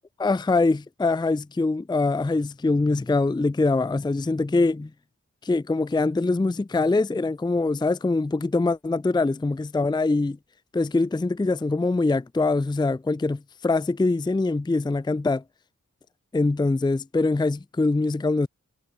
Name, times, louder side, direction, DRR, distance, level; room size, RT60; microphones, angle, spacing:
voice 1, 0.2-4.9 5.4-10.4 10.7-15.4 16.3-18.5, left 3 dB, 15° left, 0.4 m, -23 dB
wide cardioid pair, 70°, 32 cm